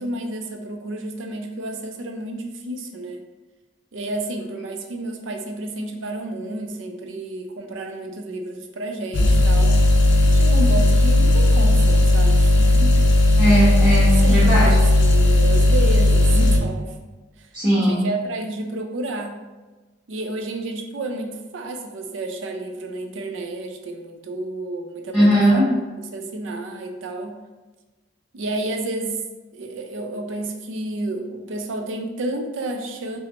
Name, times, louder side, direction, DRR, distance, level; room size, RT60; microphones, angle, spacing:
voice 1, 0.0-3.2 3.9-9.8 10.3-13.0 14.2-16.9 17.9-19.4 20.1-25.6 26.0-27.3 28.3-29.2 29.5-33.2, right 2 dB, 75° right, 4 dB, 0.5 m, -30 dB
sound 1, 9.1-16.6, left 1 dB, 65° left, 0.5 m, -15 dB
voice 2, 13.4-14.7 17.5-18.0 25.1-25.7, equal, 5° right, -10 dB, 1.1 m, -18 dB
5.7 x 2.0 x 3.1 m, 1.2 s
head